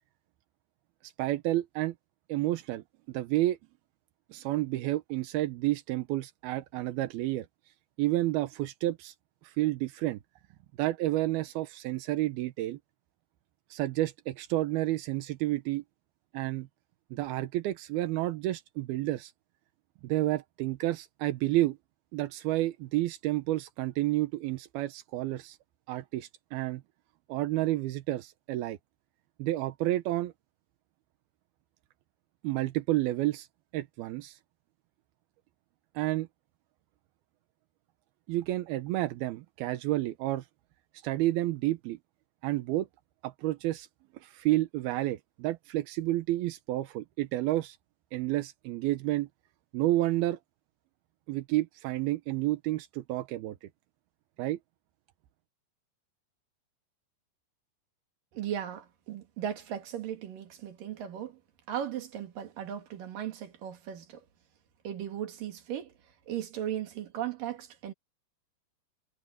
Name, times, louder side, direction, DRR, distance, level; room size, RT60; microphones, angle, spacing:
voice 1, 1.0-1.9 2.3-3.6 4.3-7.5 8.0-9.1 9.4-10.2 10.8-12.8 13.7-15.8 16.3-16.7 17.1-19.3 20.0-21.8 22.1-25.6 25.9-26.8 27.3-28.8 29.4-30.3 32.4-33.5 33.7-34.4 36.0-36.3 38.3-40.5 41.0-42.0 42.4-42.9 43.2-43.9 44.1-47.8 48.1-49.3 49.7-50.4 51.3-53.7 54.4-54.6, right 16 dB, 75° right, 2.4 m, -30 dB
voice 2, 58.3-61.4 61.7-64.2 64.8-65.9 66.3-67.9, right 10 dB, 55° right, 3.4 m, -37 dB
omnidirectional pair, 5.4 m